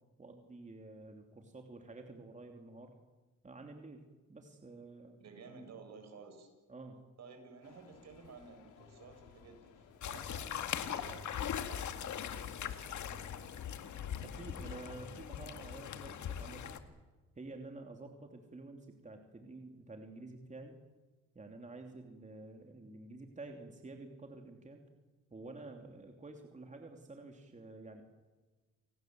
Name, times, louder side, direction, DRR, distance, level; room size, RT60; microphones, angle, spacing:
voice 1, 0.2-2.9 3.4-4.0 4.3-5.2 6.7-7.0 14.2-16.8 17.3-20.8 21.3-24.8 25.3-28.0, right 2 dB, 25° right, 3 dB, 3.0 m, -50 dB
voice 2, 5.2-6.5 7.2-13.2, right 5 dB, 60° right, 5 dB, 7.6 m, -54 dB
sound 1, 7.6-14.7, left 6 dB, 85° left, 3.7 m, -60 dB
sound 2, 10.0-16.8, left 9 dB, 70° left, 2.1 m, -40 dB
29.0 x 19.0 x 7.9 m, 1.3 s
cardioid pair, 90°, 30 cm